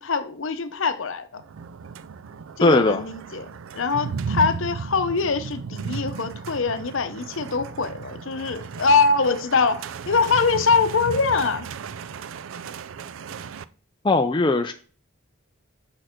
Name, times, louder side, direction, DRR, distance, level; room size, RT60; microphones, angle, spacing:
voice 1, 0.0-1.4 2.6-3.5 3.7-11.6, left 4 dB, 65° left, 0.7 m, -23 dB
sound 1, 1.3-13.6, right 5 dB, 65° right, 0.4 m, -35 dB
voice 2, 2.6-3.0 14.0-14.7, left 2 dB, 20° left, 0.4 m, -18 dB
6.5 x 6.1 x 4.5 m
head